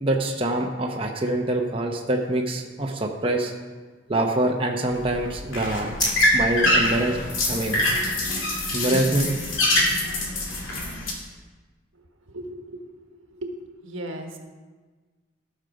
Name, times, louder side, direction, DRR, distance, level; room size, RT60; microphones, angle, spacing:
voice 1, 0.0-3.5 4.1-5.9 6.3-7.2 7.5-7.9 8.7-9.3, right 1 dB, 30° right, 1 dB, 0.8 m, -25 dB
sound 1, 4.9-11.1, left 1 dB, 90° left, 2.3 m, -24 dB
sound 2, 4.9-7.7, left 1 dB, 20° left, 2.6 m, -34 dB
voice 2, 12.3-12.8 13.3-13.5 13.8-14.4, right 1 dB, 85° right, 3 dB, 1.4 m, -35 dB
13.0 x 6.4 x 5.1 m, 1.3 s
head